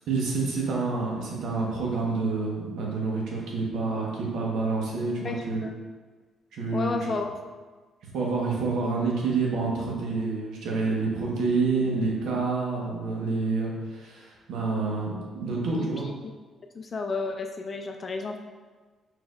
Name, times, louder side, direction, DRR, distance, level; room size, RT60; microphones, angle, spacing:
voice 1, 0.1-5.6 6.5-6.9 8.0-16.1, right 3 dB, 80° right, -2 dB, 1.0 m, -28 dB
voice 2, 5.2-5.8 6.7-7.3 15.8-16.1 16.7-18.4, left 3 dB, 40° left, 3 dB, 0.4 m, -32 dB
4.6 x 4.3 x 2.3 m, 1.4 s
cardioid pair, 90°, 0 cm